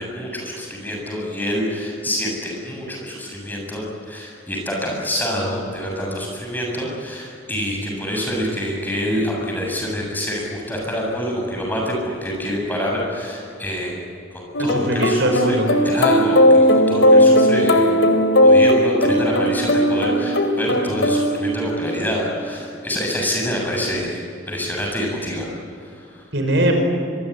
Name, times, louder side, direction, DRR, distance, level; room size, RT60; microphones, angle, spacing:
voice 1, 0.0-13.9 14.3-15.6 15.8-17.9 18.4-24.2 24.5-25.5 25.8-26.2, equal, 10° left, -1 dB, 7.8 m, -26 dB
sound 1, 14.5-22.0, equal, 80° left, 2.9 m, -17 dB
voice 2, 14.6-15.7 26.3-26.8, right 1 dB, 70° right, 4 dB, 5.3 m, -20 dB
25.0 x 23.5 x 9.7 m, 2.5 s
head